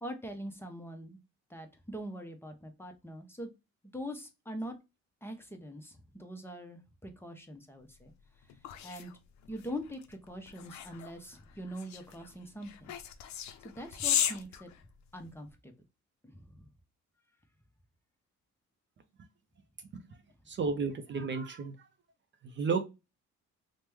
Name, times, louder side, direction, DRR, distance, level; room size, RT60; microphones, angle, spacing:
voice 1, 0.0-1.2 1.5-3.5 3.9-4.8 5.2-8.1 8.8-9.1 9.5-12.9 13.8-14.7 15.1-15.7 16.2-16.7, equal, 10° left, 0.6 m, -43 dB
sound 1, 8.0-15.5, left 10 dB, 70° left, 0.5 m, -37 dB
voice 2, 20.5-21.9 22.4-22.8, right 5 dB, 40° right, 0.5 m, -32 dB
3.0 x 2.1 x 3.4 m
cardioid pair, 90°, 30 cm